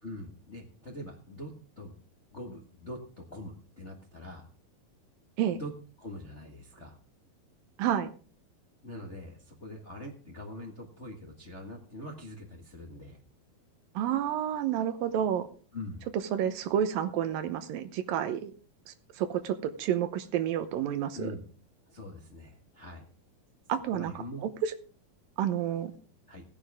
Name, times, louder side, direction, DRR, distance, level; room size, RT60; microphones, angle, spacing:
voice 1, 0.0-1.9 2.3-4.5 5.6-5.7 6.0-6.9 8.8-13.2 15.7-16.0 21.1-21.4 21.9-23.0 23.9-24.4 26.3-26.4, left 1 dB, 40° left, 0 dB, 1.0 m, -43 dB
voice 2, 7.8-8.1 14.0-15.5 16.3-18.5 18.9-21.3 23.7-24.1 24.4-24.7 25.4-25.9, right 10 dB, 75° right, 10 dB, 2.6 m, -30 dB
17.5 x 10.0 x 3.6 m, 0.39 s
omnidirectional pair, 4.1 m